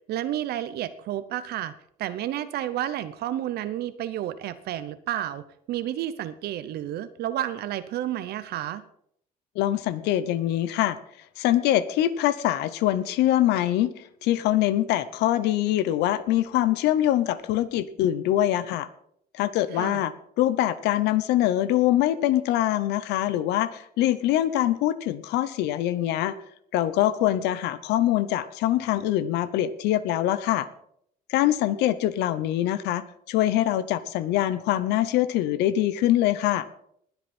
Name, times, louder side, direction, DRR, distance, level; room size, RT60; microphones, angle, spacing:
voice 1, 0.1-1.7 2.0-8.8 19.7-20.1, right 12 dB, 70° right, 13 dB, 0.8 m, -31 dB
voice 2, 9.5-11.0 11.4-18.9 19.3-26.4 26.7-30.7 31.3-36.7, left 13 dB, 90° left, 15 dB, 0.9 m, -24 dB
20.5 x 8.2 x 4.3 m, 0.69 s
cardioid pair, 110°, 17 cm